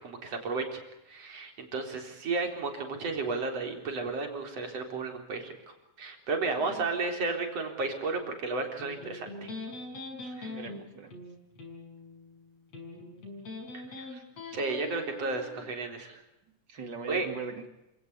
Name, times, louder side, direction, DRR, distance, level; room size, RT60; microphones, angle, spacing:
voice 1, 0.0-0.8 1.1-5.5 6.0-9.5 10.2-10.6 14.0-14.2 14.5-16.2 17.1-17.3, right 3 dB, 55° right, 4 dB, 5.0 m, -33 dB
voice 2, 6.6-6.9 10.5-11.2 16.7-17.7, right 4 dB, 40° right, 7 dB, 2.9 m, -41 dB
Electric guitar, 8.8-15.8, left 3 dB, 60° left, 8.0 m, -43 dB
28.0 x 18.0 x 8.4 m, 0.90 s
omnidirectional pair, 3.4 m